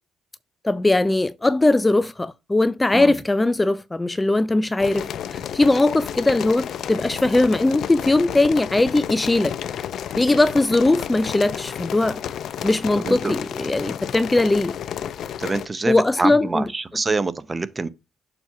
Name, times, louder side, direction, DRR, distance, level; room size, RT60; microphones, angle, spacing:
voice 1, 0.6-9.5 10.1-12.2 12.6-14.7 15.9-16.6, left 2 dB, 15° left, 0.4 m, -20 dB
sound 1, 4.8-15.7, left 9 dB, 70° left, 0.5 m, -31 dB
voice 2, 15.4-17.9, right 3 dB, 25° right, 0.7 m, -25 dB
7.0 x 2.9 x 5.8 m
cardioid pair, 90°, 0 cm